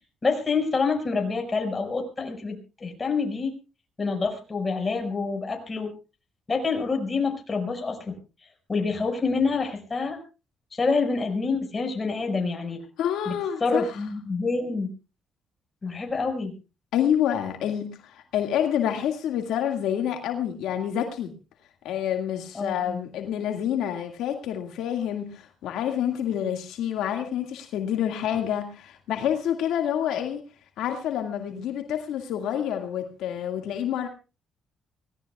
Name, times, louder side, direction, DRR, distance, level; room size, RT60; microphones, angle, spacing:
voice 1, 0.2-3.6 4.0-5.9 6.5-8.1 8.7-10.2 10.7-12.8 13.3-13.4 13.6-14.9 15.8-16.5 22.5-23.0, left 4 dB, 30° left, 4 dB, 5.5 m, -27 dB
voice 2, 13.0-14.0 16.9-21.3 21.8-30.4 30.8-34.1, left 9 dB, 85° left, 5 dB, 2.0 m, -28 dB
24.5 x 18.0 x 2.4 m, 0.31 s
cardioid pair, 90°, 0 cm